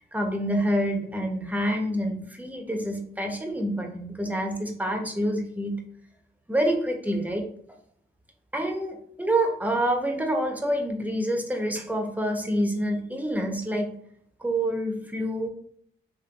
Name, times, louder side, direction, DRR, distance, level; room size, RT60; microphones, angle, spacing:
voice 1, 0.1-5.8 6.5-7.5 8.5-13.9 14.4-15.5, right 1 dB, 5° right, 2 dB, 1.0 m, -27 dB
3.7 x 3.0 x 3.0 m, 0.66 s
cardioid pair, 40°, 21 cm